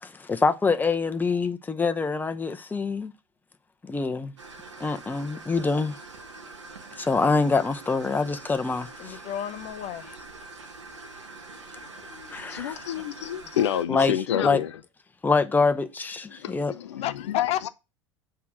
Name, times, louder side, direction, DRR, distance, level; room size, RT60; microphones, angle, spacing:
voice 1, 0.0-3.1 3.9-4.3 4.8-6.0 7.0-9.2 12.3-12.8 13.9-14.2 14.4-14.6 15.2-16.7, left 4 dB, 10° left, 0.9 m, -25 dB
sound 1, 4.4-13.8, right 3 dB, 80° right, 1.4 m, -44 dB
voice 2, 9.0-10.2 11.8-12.6 13.0-13.1 17.0-17.7, left 11 dB, 45° left, 0.9 m, -33 dB
voice 3, 12.5-14.7 16.4-17.7, left 11 dB, 70° left, 0.6 m, -28 dB
8.3 x 3.9 x 6.0 m
figure-of-eight pair, 80°, 15 cm